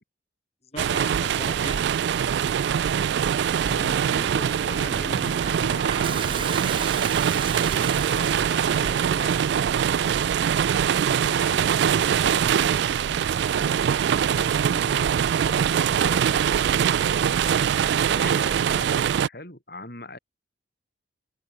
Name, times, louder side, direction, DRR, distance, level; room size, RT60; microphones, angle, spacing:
voice 1, 0.7-1.9 7.7-9.5, left 2 dB, 35° left, 7.1 m, -39 dB
sound 1, 0.8-19.3, right 8 dB, 65° right, 0.3 m, -23 dB
voice 2, 3.7-6.8 11.1-13.8 14.3-20.2, left 1 dB, 50° left, 6.4 m, -41 dB
Toilet flush, 4.8-9.1, right 6 dB, 25° right, 1.3 m, -35 dB
open air
head